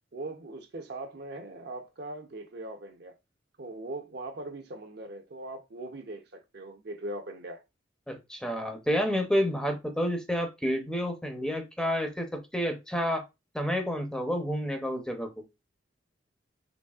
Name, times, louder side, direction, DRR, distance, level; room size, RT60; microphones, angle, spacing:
voice 1, 0.1-3.1 3.6-7.6, right 2 dB, 60° right, 0.7 m, -40 dB
voice 2, 8.1-13.2 13.5-15.3, equal, 5° left, 0.6 m, -29 dB
4.0 x 3.2 x 2.3 m
head